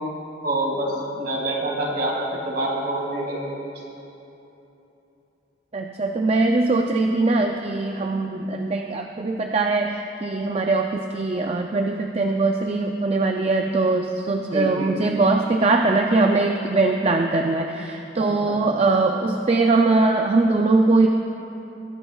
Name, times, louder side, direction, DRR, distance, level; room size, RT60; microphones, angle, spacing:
voice 1, 0.4-2.2 2.4-3.5 14.5-14.9 18.2-18.6, right 1 dB, 50° right, -2 dB, 2.3 m, -26 dB
voice 2, 5.7-21.1, right 3 dB, 35° right, 3 dB, 0.4 m, -21 dB
20.5 x 10.5 x 2.4 m, 3.0 s
head